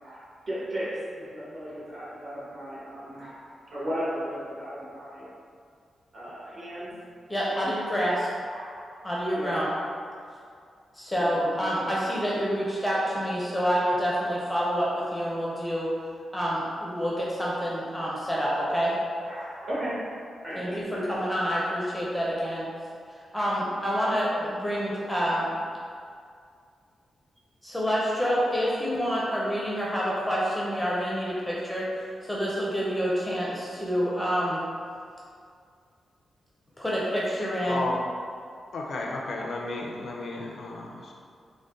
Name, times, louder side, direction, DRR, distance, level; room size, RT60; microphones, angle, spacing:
voice 1, 0.0-3.4 3.7-5.3 6.1-6.9 7.7-7.8 8.1-9.0 9.3-9.9 11.1-11.8 19.2-20.2 20.4-21.2, equal, 50° right, -9 dB, 1.3 m, -36 dB
voice 2, 7.3-8.3 9.0-9.7 10.9-15.9 16.3-18.9 20.6-22.7 23.1-25.5 27.6-31.9 32.2-34.6 36.8-37.8, equal, 5° left, -6 dB, 0.5 m, -27 dB
voice 3, 37.6-38.0 38.7-41.1, left 2 dB, 60° left, -1 dB, 0.4 m, -33 dB
3.8 x 2.1 x 3.6 m, 2.3 s
wide cardioid pair, 135°, 0 cm